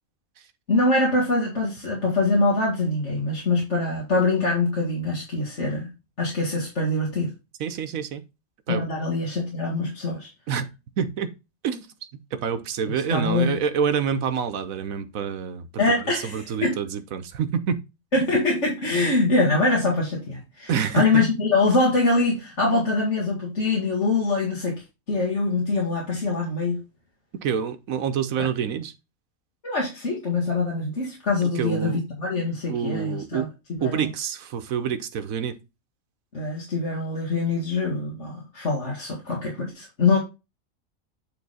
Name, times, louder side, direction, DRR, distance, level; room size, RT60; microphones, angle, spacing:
voice 1, 0.7-5.9 6.2-7.3 8.7-10.3 12.9-13.6 15.8-16.8 18.1-26.8 28.4-28.5 29.6-34.1 36.3-40.2, left 3 dB, 55° left, 2.2 m, -24 dB
voice 2, 7.6-8.2 8.7-8.8 10.5-10.7 11.0-11.3 11.6-11.9 12.3-15.7 16.1-17.8 20.7-21.1 27.4-28.9 31.6-32.0 32.7-33.5 33.8-35.6, right 7 dB, 80° right, 1.3 m, -27 dB
8.7 x 3.8 x 4.1 m
omnidirectional pair, 1.4 m